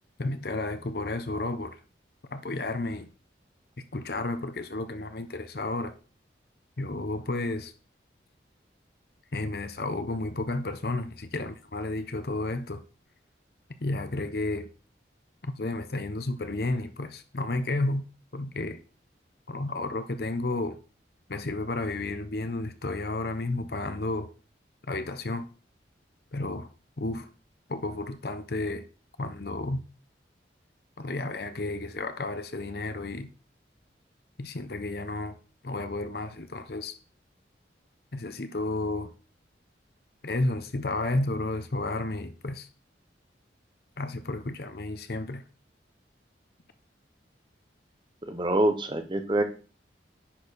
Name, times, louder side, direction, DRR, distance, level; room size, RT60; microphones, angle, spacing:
voice 1, 0.2-1.8 2.3-3.1 3.9-5.9 6.8-7.7 9.3-12.8 13.8-14.7 15.4-18.0 18.3-18.8 19.5-20.8 21.3-24.3 24.9-25.5 26.3-26.7 27.0-27.3 27.7-28.8 29.2-29.8 31.0-33.3 34.4-35.4 35.6-36.9 38.1-39.1 40.2-42.7 44.0-45.4, left 2 dB, 55° left, 0.8 m, -32 dB
voice 2, 48.3-49.4, right 1 dB, 25° right, 0.9 m, -25 dB
10.0 x 4.5 x 4.1 m
head